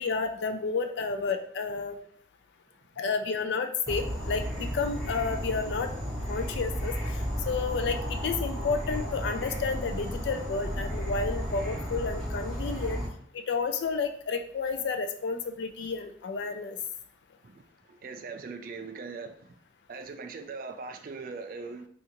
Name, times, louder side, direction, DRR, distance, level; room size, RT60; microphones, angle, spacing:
voice 1, 0.0-2.0 3.0-5.9 6.3-13.0 13.3-16.8, left 4 dB, 70° left, 8 dB, 0.4 m, -31 dB
Insect / Frog, 3.9-13.1, equal, 5° left, 0.7 m, -33 dB
voice 2, 17.9-19.5 19.9-21.9, right 4 dB, 50° right, 6 dB, 0.3 m, -40 dB
3.7 x 2.4 x 2.9 m, 0.62 s
head